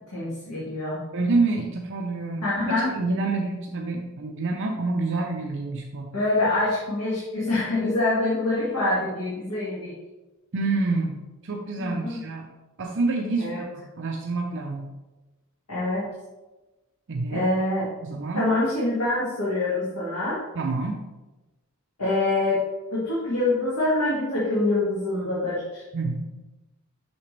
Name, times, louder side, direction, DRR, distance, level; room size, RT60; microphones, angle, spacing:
voice 1, 0.1-1.0 2.4-2.9 6.1-9.9 11.8-12.2 13.4-13.6 15.7-16.1 17.3-17.9 18.3-20.5 22.0-22.6 22.9-25.8, left 2 dB, 80° left, -8 dB, 1.9 m, -25 dB
voice 2, 1.1-2.5 3.0-6.1 10.5-11.2 11.4-12.5 12.8-14.9 17.1-17.5 18.0-18.5 20.6-21.0 25.9-26.3, right 3 dB, 55° right, 1 dB, 0.6 m, -27 dB
7.0 x 5.9 x 3.3 m, 1.1 s
head